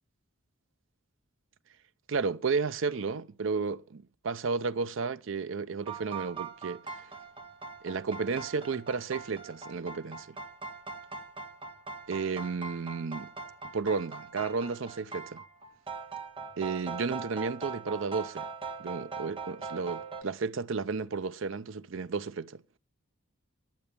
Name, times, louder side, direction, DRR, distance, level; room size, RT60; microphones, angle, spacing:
voice 1, 2.1-7.1 7.8-10.4 12.1-13.3 13.7-15.4 16.6-18.5 18.8-22.6, right 4 dB, 70° right, 0.6 m, -33 dB
sound 1, 5.9-20.2, right 4 dB, 25° right, 1.6 m, -41 dB
10.5 x 8.1 x 6.7 m
head